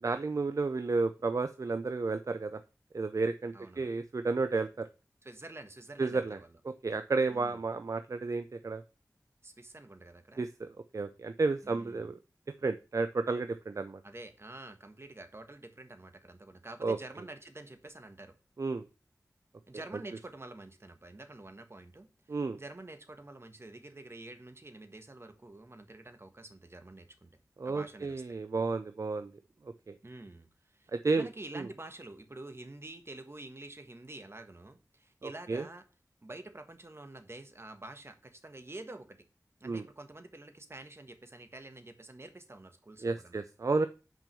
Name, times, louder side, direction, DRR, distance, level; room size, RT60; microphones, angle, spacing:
voice 1, 0.0-2.6 2.9-4.9 6.0-6.4 6.7-8.8 10.4-10.7 10.9-12.2 12.6-14.0 16.8-17.0 18.6-18.8 22.3-22.6 27.6-29.3 29.9-30.0 30.9-31.3 31.5-31.7 35.2-35.6 39.6-39.8 43.0-43.9, right 3 dB, 60° right, 10 dB, 0.5 m, -32 dB
voice 2, 3.5-3.9 5.2-6.6 7.3-7.6 9.4-10.5 11.6-12.1 14.0-18.3 19.7-27.3 27.6-28.4 30.0-30.5 30.7-35.8 36.2-39.2 39.6-43.4, right 2 dB, 40° right, 7 dB, 1.4 m, -48 dB
6.1 x 5.2 x 6.9 m, 0.33 s
wide cardioid pair, 45°, 6 cm